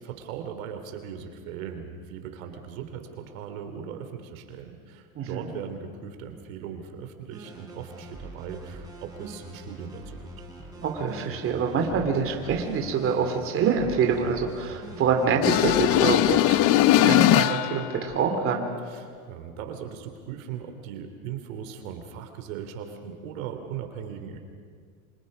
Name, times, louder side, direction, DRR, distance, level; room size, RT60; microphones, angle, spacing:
voice 1, 0.0-10.2 18.9-24.4, right 8 dB, 75° right, 7 dB, 3.1 m, -39 dB
voice 2, 5.1-5.5 10.8-18.7, right 6 dB, 30° right, 3 dB, 2.7 m, -26 dB
sound 1, 7.3-17.0, right 1 dB, 10° right, 4.7 m, -43 dB
sound 2, 15.4-17.9, left 14 dB, 35° left, 0.5 m, -20 dB
26.5 x 26.0 x 5.4 m, 2.1 s
supercardioid pair, 140°, 41 cm